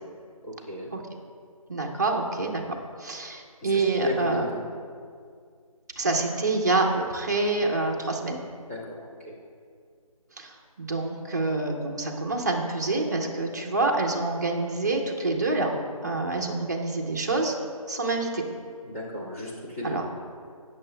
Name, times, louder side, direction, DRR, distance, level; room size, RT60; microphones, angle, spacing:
voice 1, 0.4-0.9 3.6-4.6 8.7-9.3 18.8-20.0, equal, 25° left, -7 dB, 1.6 m, -34 dB
voice 2, 1.7-2.6 3.0-4.4 6.0-8.4 10.4-15.7 16.0-17.5 17.9-18.4 19.8-20.0, right 2 dB, 30° right, 1 dB, 0.8 m, -27 dB
20.0 x 6.8 x 2.2 m, 2.2 s
figure-of-eight pair, 175°, 19 cm